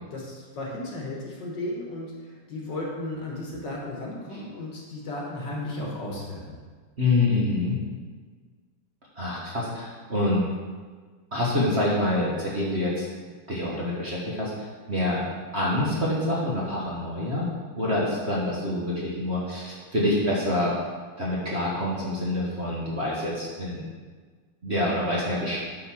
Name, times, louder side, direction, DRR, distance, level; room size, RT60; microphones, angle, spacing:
voice 1, 0.1-6.6, left 1 dB, 60° left, -2 dB, 2.0 m, -34 dB
voice 2, 7.0-7.8 9.2-10.4 11.3-13.1 13.5-14.5 14.9-15.2 15.5-17.5 17.7-20.8 21.2-23.8 24.6-25.6, left 1 dB, 35° right, -6 dB, 1.5 m, -26 dB
8.6 x 4.4 x 6.0 m, 1.5 s
omnidirectional pair, 2.4 m